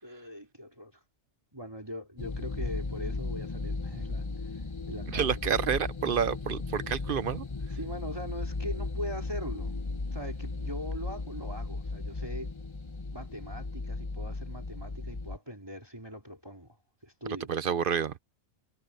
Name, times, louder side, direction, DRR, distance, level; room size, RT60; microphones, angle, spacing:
voice 1, 0.0-1.0 1.5-5.3 7.7-9.7 10.1-12.5 13.1-16.8 17.0-17.5, equal, 20° right, 3.5 m, -41 dB
sound 1, 2.2-15.4, left 3 dB, 25° left, 1.0 m, -36 dB
voice 2, 5.1-7.4 17.5-18.1, right 7 dB, 55° right, 0.7 m, -29 dB
omnidirectional pair, 1.4 m